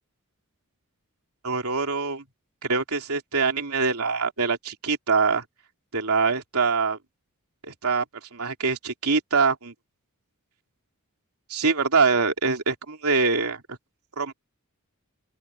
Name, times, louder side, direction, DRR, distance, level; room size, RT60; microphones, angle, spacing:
voice 1, 1.4-2.2 2.6-5.4 5.9-7.0 7.6-8.0 8.3-9.7 11.5-13.6 14.2-14.3, right 4 dB, 85° right, 3.2 m, -24 dB
open air
head